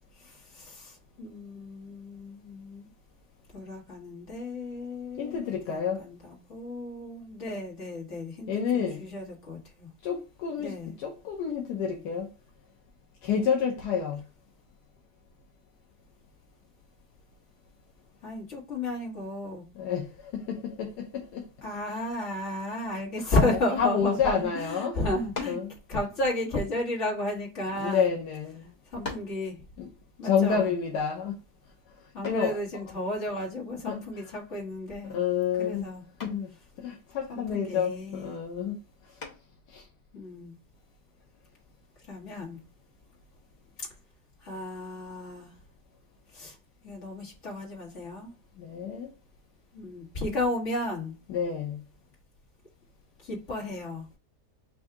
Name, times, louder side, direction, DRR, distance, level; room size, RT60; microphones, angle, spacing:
voice 1, 0.2-2.9 3.5-5.4 5.7-9.9 10.6-10.9 18.2-19.6 21.6-25.6 25.9-28.1 28.9-29.6 30.2-30.6 32.1-35.2 35.6-36.0 37.3-38.4 40.1-40.5 42.1-42.6 44.4-45.5 46.3-46.6 46.8-48.3 49.7-51.2 53.2-54.0, left 2 dB, 45° left, 1.8 m, -33 dB
voice 2, 5.2-6.0 8.5-9.0 10.0-12.3 13.2-14.2 19.7-21.5 23.2-25.0 25.4-25.7 27.8-28.7 29.8-29.9 30.2-31.4 32.2-32.9 33.9-34.3 35.0-35.9 36.2-36.5 36.8-38.8 39.7-39.8 48.6-49.1 51.3-51.8, left 7 dB, 80° left, 1.2 m, -29 dB
sound 1, 25.3-25.7 26.7-27.8 28.5-28.6 29.0-29.4 32.2-32.6 34.5-34.9 35.2-35.6 36.2-36.5 39.2-39.6, left 3 dB, 30° left, 0.9 m, -41 dB
4.6 x 2.6 x 3.5 m
omnidirectional pair, 1.8 m